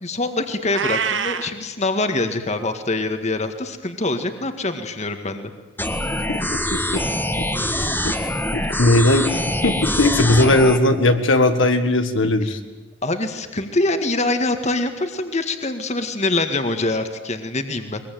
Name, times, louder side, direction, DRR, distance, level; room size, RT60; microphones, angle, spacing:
voice 1, 0.0-5.5 13.0-18.0, left 2 dB, 35° left, 7 dB, 2.0 m, -24 dB
Meow, 0.7-1.5, right 6 dB, 70° right, 1.5 m, -24 dB
sound 1, 5.8-10.8, left 1 dB, 10° left, 1.7 m, -24 dB
voice 2, 8.5-12.6, left 2 dB, 80° left, 7 dB, 1.9 m, -18 dB
22.5 x 22.0 x 9.4 m, 1.1 s
head